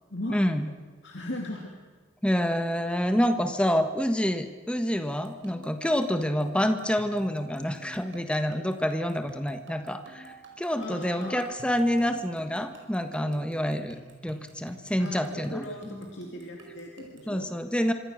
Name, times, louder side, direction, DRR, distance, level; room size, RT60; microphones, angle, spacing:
voice 1, 0.3-0.7 2.2-15.6 17.3-17.9, equal, 5° left, 7 dB, 1.5 m, -27 dB
voice 2, 1.0-1.7 10.8-11.4 15.0-17.5, left 1 dB, 60° left, 0 dB, 2.8 m, -38 dB
sound 1, 5.1-17.4, right 2 dB, 65° right, 5.4 m, -49 dB
26.0 x 25.5 x 6.6 m, 1.4 s
head